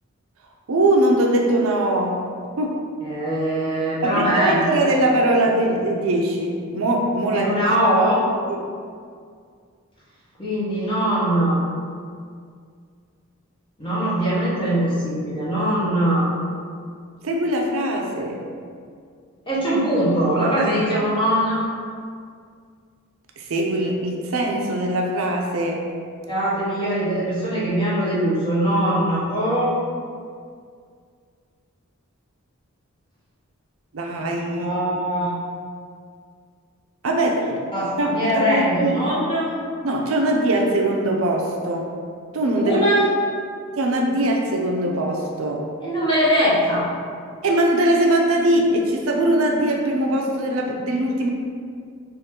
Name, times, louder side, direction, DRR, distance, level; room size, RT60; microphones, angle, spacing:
voice 1, 0.7-2.3 2.6-2.8 4.0-7.6 8.5-8.6 17.2-18.4 23.4-25.9 33.9-34.7 37.0-37.6 38.0-39.0 39.8-41.9 42.3-42.8 43.8-45.7 47.4-51.3, right 1 dB, 70° right, 1 dB, 0.5 m, -21 dB
voice 2, 3.0-4.8 7.3-8.2 10.4-11.6 13.8-16.3 19.5-21.6 26.3-29.7 34.1-35.3 37.7-39.5 42.6-43.1 45.8-46.9, right 1 dB, 20° left, -8 dB, 1.1 m, -21 dB
3.7 x 2.9 x 4.3 m, 2.2 s
head